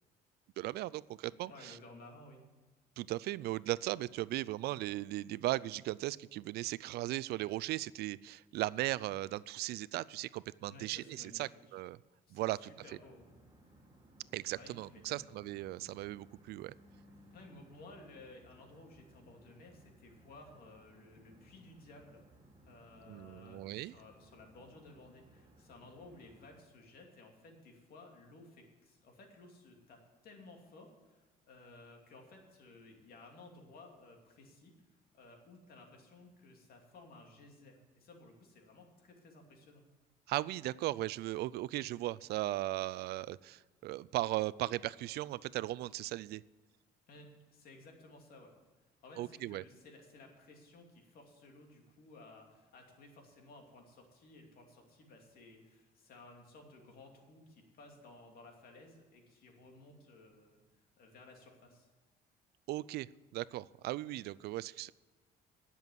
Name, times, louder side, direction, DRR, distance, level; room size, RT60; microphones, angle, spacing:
voice 1, 0.6-1.8 3.0-12.0 12.3-12.7 14.3-16.7 23.1-23.9 40.3-46.4 49.2-49.6 62.7-63.1 63.3-64.9, right 16 dB, 70° right, 19 dB, 0.4 m, -37 dB
voice 2, 1.5-2.4 10.7-11.4 11.7-11.8 12.3-13.3 14.5-15.3 17.3-22.3 22.6-30.0 30.2-34.7 35.1-39.8 47.1-48.5 49.0-60.6 61.0-61.9, left 2 dB, 60° left, 2 dB, 2.7 m, -56 dB
sound 1, 12.7-26.6, right 1 dB, 20° right, 3.5 m, -62 dB
10.5 x 7.0 x 9.2 m, 1.2 s
cardioid pair, 110°, 17 cm